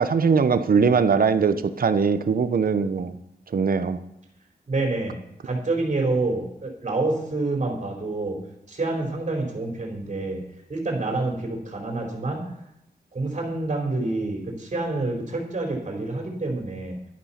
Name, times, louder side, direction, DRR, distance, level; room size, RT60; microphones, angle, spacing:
voice 1, 0.0-3.2 3.5-4.0, right 5 dB, 60° right, 10 dB, 1.0 m, -21 dB
voice 2, 4.7-5.2 5.4-8.4 8.7-10.4 10.7-12.4 13.1-17.0, right 2 dB, 45° right, 1 dB, 4.7 m, -27 dB
12.0 x 10.5 x 5.9 m, 0.79 s
wide cardioid pair, 90°, 16 cm